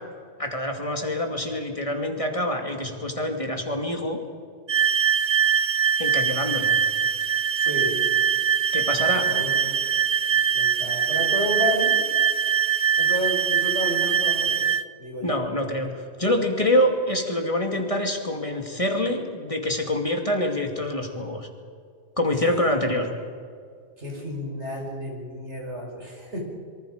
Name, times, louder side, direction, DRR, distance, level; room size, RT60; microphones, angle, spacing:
voice 1, 0.4-4.2 6.0-6.7 8.7-9.3 15.2-21.5 22.2-23.1, left 1 dB, 30° left, 3 dB, 2.6 m, -26 dB
sound 1, 4.7-14.8, right 7 dB, 40° right, 0.8 m, -22 dB
voice 2, 7.6-8.1 9.3-9.6 10.3-12.1 13.0-14.6 15.0-15.4 24.0-26.4, equal, 90° right, 0 dB, 5.5 m, -31 dB
26.5 x 24.5 x 5.1 m, 2.3 s
omnidirectional pair, 1.1 m